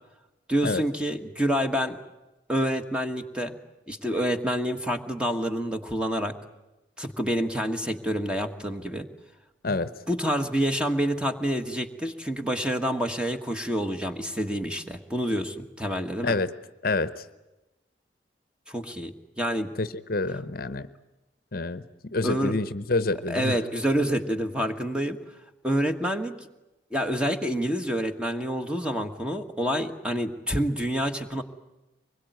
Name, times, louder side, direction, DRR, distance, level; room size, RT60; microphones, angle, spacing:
voice 1, 0.5-2.0 2.5-3.5 3.9-6.3 7.0-9.1 9.7-9.8 10.1-16.4 18.7-19.7 22.2-22.5 23.3-25.2 25.6-26.3 26.9-31.4, equal, 5° right, 6 dB, 1.5 m, -27 dB
voice 2, 16.8-17.3 19.8-20.9 21.5-23.6, left 3 dB, 55° left, 13 dB, 0.9 m, -28 dB
24.5 x 21.5 x 9.3 m, 1.0 s
head